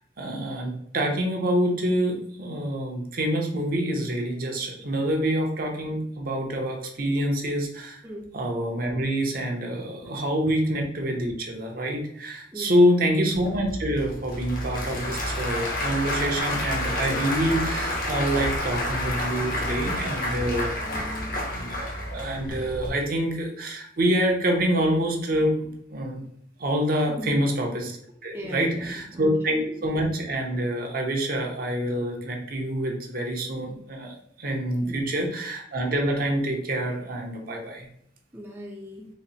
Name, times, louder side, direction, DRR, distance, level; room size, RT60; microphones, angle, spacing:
voice 1, 0.2-8.0 8.3-20.9 21.5-26.2 26.6-27.9 28.2-37.9, equal, 55° right, 1 dB, 0.8 m, -26 dB
voice 2, 8.0-8.3 10.0-10.1 12.5-13.1 20.4-20.6 20.8-21.4 27.1-27.4 28.3-29.2 29.5-29.8 34.8-35.1 38.3-39.1, equal, 15° right, -3 dB, 0.5 m, -38 dB
Applause / Crowd, 13.3-22.9, left 1 dB, 50° left, 1.0 m, -29 dB
4.1 x 2.1 x 4.1 m, 0.70 s
head